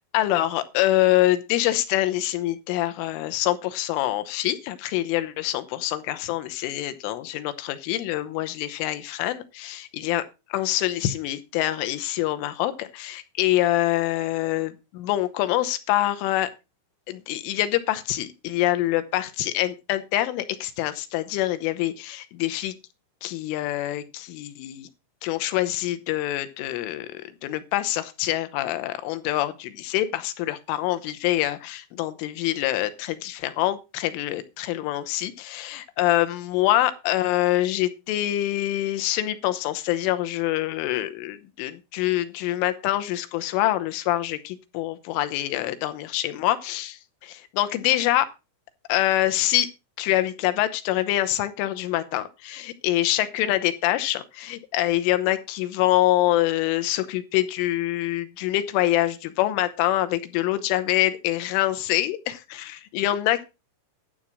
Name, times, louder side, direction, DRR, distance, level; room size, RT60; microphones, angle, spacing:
voice 1, 0.1-10.2 10.5-16.5 17.1-22.7 23.2-24.9 25.2-48.3 48.9-49.7 50.0-63.4, left 15 dB, 90° left, 11 dB, 3.5 m, -25 dB
11.5 x 7.4 x 5.4 m, 0.28 s
omnidirectional pair, 5.6 m